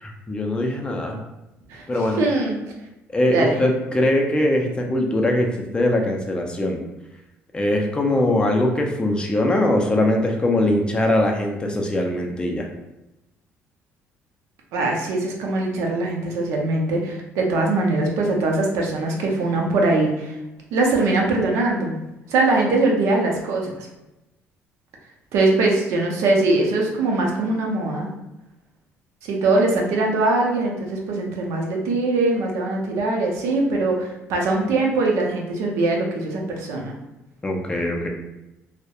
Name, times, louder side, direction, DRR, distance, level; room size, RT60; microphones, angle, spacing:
voice 1, 0.0-1.2 1.9-2.2 3.1-6.8 7.5-12.7 37.4-38.1, left 1 dB, 20° left, 1 dB, 0.4 m, -21 dB
voice 2, 2.2-2.5 3.3-3.6 14.7-20.3 20.7-22.0 22.3-23.9 25.3-28.1 29.2-36.9, right 2 dB, 80° right, 0 dB, 0.5 m, -22 dB
2.6 x 2.0 x 2.3 m, 0.95 s
cardioid pair, 110°, 5 cm